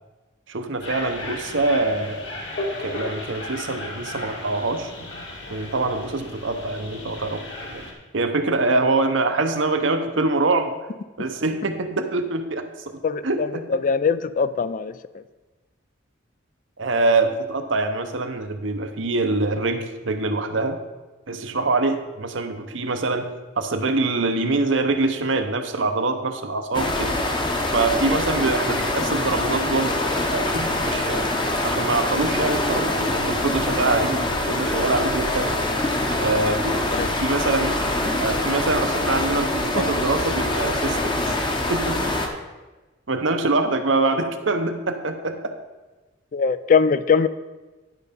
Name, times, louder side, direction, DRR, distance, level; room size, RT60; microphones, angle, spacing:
voice 1, 0.5-2.3 2.8-5.2 5.5-7.4 7.7-7.9 8.1-10.8 11.2-13.6 16.8-20.8 21.3-23.3 23.6-27.1 27.7-31.3 31.6-35.6 36.2-37.8 38.2-41.4 41.7-42.1 43.1-45.5, right 3 dB, 70° right, 7 dB, 0.8 m, -24 dB
sound 1, 0.8-7.9, left 2 dB, 65° left, 1.9 m, -35 dB
voice 2, 13.0-13.5 13.8-14.9 36.9-37.1 46.3-47.3, left 5 dB, 40° left, 14 dB, 0.3 m, -21 dB
sound 2, 26.7-42.3, left 1 dB, 25° left, 0.8 m, -24 dB
11.0 x 5.4 x 5.2 m, 1.2 s
head